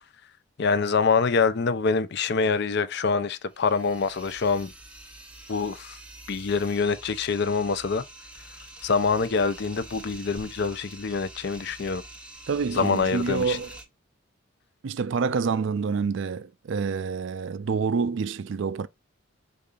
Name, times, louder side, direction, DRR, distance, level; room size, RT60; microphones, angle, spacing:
voice 1, 0.6-4.7 5.5-6.0 6.3-8.0 8.8-12.0 12.7-13.6, left 5 dB, 55° left, 0.5 m, -25 dB
sound 1, 3.5-13.8, right 1 dB, 5° right, 0.8 m, -46 dB
voice 2, 12.5-13.8 14.8-18.9, right 5 dB, 60° right, 0.4 m, -27 dB
5.2 x 3.7 x 2.4 m
head